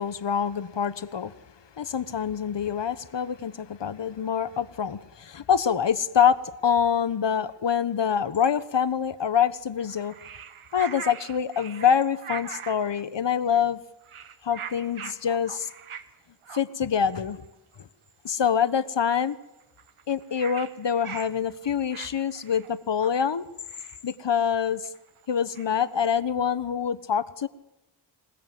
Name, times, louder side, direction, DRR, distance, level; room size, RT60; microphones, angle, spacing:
voice 1, 0.0-1.3 1.8-10.1 10.7-13.8 14.4-15.7 16.5-17.4 18.2-19.3 20.1-23.4 24.0-24.9 25.3-27.5, left 7 dB, 60° left, 13 dB, 1.3 m, -25 dB
sound 1, 9.8-13.0 13.5-13.7 14.0-16.1 16.4-16.6 17.2-17.3 17.5-17.8 18.1-18.4 18.7-18.8 18.9-19.0 19.3-26.0, right 7 dB, 85° right, 1.5 m, -42 dB
26.5 x 19.5 x 7.8 m, 0.93 s
wide cardioid pair, 70°, 49 cm